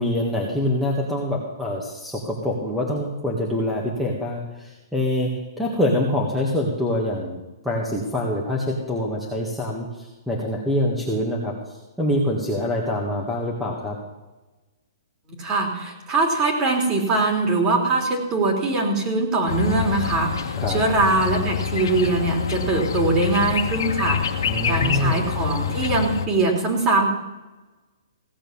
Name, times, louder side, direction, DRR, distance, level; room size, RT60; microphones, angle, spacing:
voice 1, 0.0-5.3 5.6-11.5 12.0-14.0 20.6-20.8 24.5-25.2, left 1 dB, ahead, -3 dB, 1.9 m, -25 dB
voice 2, 15.4-27.1, right 3 dB, 25° right, 1 dB, 3.5 m, -22 dB
sound 1, 19.5-26.3, left 8 dB, 75° left, 1.4 m, -26 dB
16.5 x 7.5 x 7.3 m, 1.1 s
hypercardioid pair, 145°, 2 cm